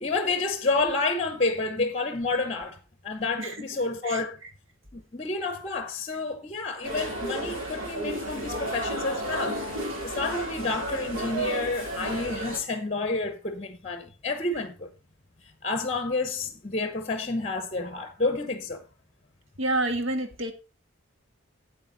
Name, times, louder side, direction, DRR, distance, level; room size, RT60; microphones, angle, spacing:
voice 1, 0.0-2.8 3.0-4.4 4.9-14.9 15.6-18.8, left 3 dB, 30° left, 0.9 m, -29 dB
voice 2, 4.0-4.5 19.6-20.5, right 2 dB, 70° right, 1.7 m, -29 dB
sound 1, 6.8-12.6, right 1 dB, 90° right, 6.1 m, -32 dB
8.8 x 8.1 x 3.9 m
head